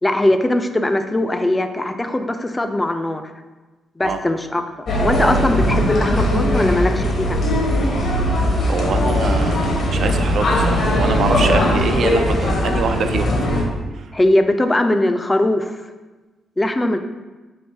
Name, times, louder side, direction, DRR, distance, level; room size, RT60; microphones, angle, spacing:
voice 1, 0.0-3.2 4.0-4.6 5.0-7.4 14.1-15.8 16.6-17.0, left 1 dB, 20° left, 7 dB, 0.3 m, -20 dB
sound 1, 4.9-13.6, left 1 dB, 65° left, 0.8 m, -19 dB
voice 2, 8.6-13.3 13.9-14.1, right 5 dB, 65° right, 7 dB, 0.3 m, -24 dB
3.2 x 2.5 x 4.4 m, 1.2 s
cardioid pair, 65°, 0 cm